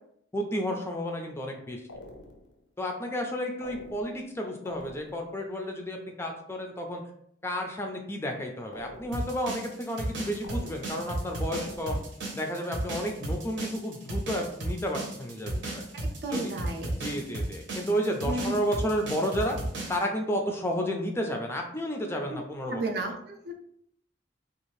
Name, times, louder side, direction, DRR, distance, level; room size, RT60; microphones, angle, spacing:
voice 1, 0.3-1.8 2.8-7.0 7.4-12.0 12.3-15.8 16.3-16.5 16.9-19.6 19.9-22.8, equal, 15° left, 3 dB, 0.3 m, -32 dB
sound 1, 1.9-2.6 3.6-4.3 4.7-5.4 8.7-9.5 10.4-11.2 11.5-12.2, left 2 dB, 85° left, 0.5 m, -47 dB
sound 2, 9.1-20.0, right 1 dB, 85° right, 0.8 m, -34 dB
voice 2, 15.9-16.9 18.3-18.6 22.7-23.5, right 2 dB, 60° right, 2 dB, 0.5 m, -33 dB
2.6 x 2.4 x 3.1 m, 0.70 s
head